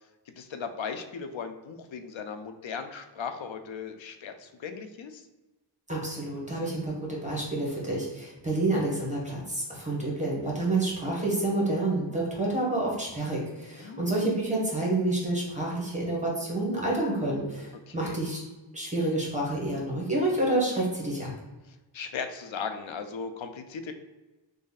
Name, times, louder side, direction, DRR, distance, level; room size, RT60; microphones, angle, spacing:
voice 1, 0.3-5.3 13.7-14.1 17.9-18.2 21.7-23.9, left 6 dB, 75° left, 7 dB, 0.5 m, -37 dB
voice 2, 5.9-18.4 18.7-21.3, right 2 dB, 15° right, -4 dB, 1.3 m, -28 dB
3.1 x 2.6 x 4.0 m, 1.1 s
wide cardioid pair, 50°, 47 cm